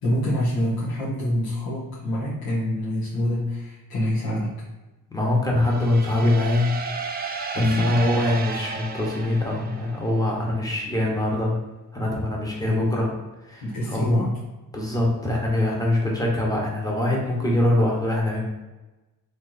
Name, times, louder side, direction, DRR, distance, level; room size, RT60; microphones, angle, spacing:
voice 1, 0.0-4.5 7.5-8.0 12.6-13.0 13.6-14.3, left 1 dB, 80° left, -10 dB, 1.2 m, -26 dB
voice 2, 5.1-6.7 7.2-7.3 7.6-11.5 11.9-13.1 13.4-14.1 14.7-18.4, left 1 dB, 10° left, -2 dB, 1.0 m, -23 dB
sound 1, 5.6-10.3, right 4 dB, 30° right, 0.4 m, -33 dB
3.4 x 3.0 x 4.0 m, 1.1 s
cardioid pair, 120°, 36 cm